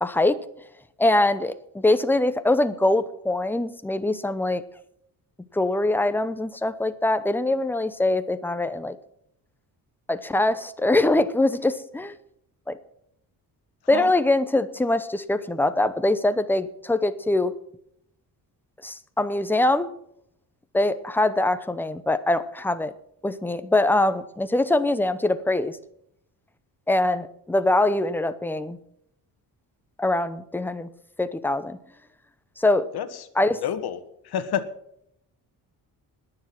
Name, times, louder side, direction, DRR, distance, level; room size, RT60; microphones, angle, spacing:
voice 1, 0.0-0.4 1.0-4.6 5.5-9.0 10.1-12.1 12.7-12.8 13.9-17.5 18.8-19.9 20.7-22.9 23.2-25.8 26.9-28.8 30.0-30.9 31.2-31.8 32.6-32.9 33.4-33.6, left 2 dB, 5° left, 11 dB, 0.7 m, -23 dB
voice 2, 33.6-34.0 34.2-34.6, left 9 dB, 75° left, 10 dB, 1.6 m, -27 dB
20.5 x 7.3 x 6.0 m, 0.73 s
cardioid pair, 160°, 38 cm